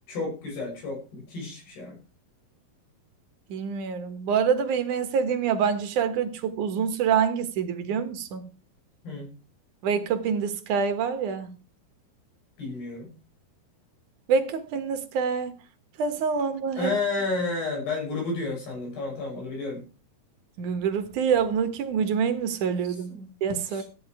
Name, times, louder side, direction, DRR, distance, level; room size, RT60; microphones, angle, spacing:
voice 1, 0.1-2.0 9.0-9.3 12.6-13.1 16.8-19.8 23.1-23.3 23.7-23.8, left 3 dB, 90° left, 9.5 m, -31 dB
voice 2, 3.5-8.4 9.8-11.5 14.3-15.6 16.0-16.9 20.6-23.1 23.4-23.8, right 6 dB, 60° right, 2.5 m, -26 dB
14.5 x 10.5 x 4.9 m
omnidirectional pair, 4.5 m